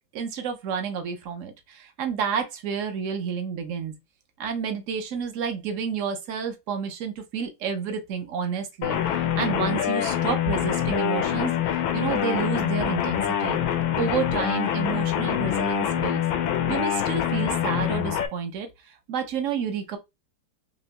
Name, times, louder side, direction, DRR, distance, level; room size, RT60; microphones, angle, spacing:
voice 1, 0.1-3.9 4.4-13.6 13.9-16.2 16.7-20.0, right 6 dB, 65° right, 0.8 m, -30 dB
sound 1, 8.8-18.3, left 10 dB, 90° left, 1.5 m, -25 dB
4.4 x 3.0 x 2.8 m
omnidirectional pair, 2.1 m